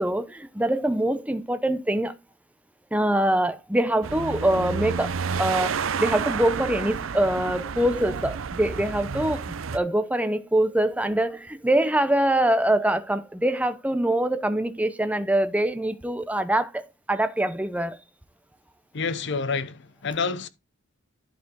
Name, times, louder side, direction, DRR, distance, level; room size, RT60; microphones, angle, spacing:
voice 1, 0.0-2.2 2.9-16.8 17.1-18.0, right 1 dB, 5° right, 0.7 m, -24 dB
sound 1, 4.0-9.8, right 6 dB, 85° right, 0.6 m, -30 dB
voice 2, 18.9-20.5, left 4 dB, 65° left, 0.8 m, -28 dB
11.5 x 4.9 x 3.8 m
head